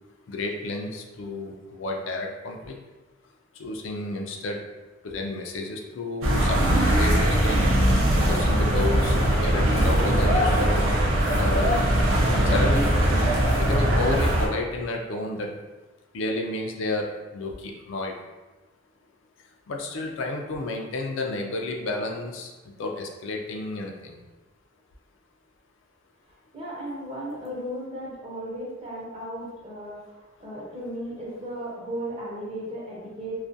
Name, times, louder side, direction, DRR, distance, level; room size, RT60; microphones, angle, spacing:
voice 1, 0.3-2.8 3.6-4.6 5.0-7.6 8.3-9.2 9.4-10.9 11.4-11.8 12.4-12.9 13.6-15.6 16.1-17.1 17.3-18.1 19.7-22.5 22.8-24.2, left 2 dB, 70° left, 1 dB, 0.3 m, -31 dB
sound 1, 6.2-14.5, right 1 dB, 80° right, 0.5 m, -21 dB
voice 2, 26.5-33.5, equal, 30° right, -5 dB, 0.6 m, -35 dB
2.3 x 2.1 x 2.5 m, 1.2 s
head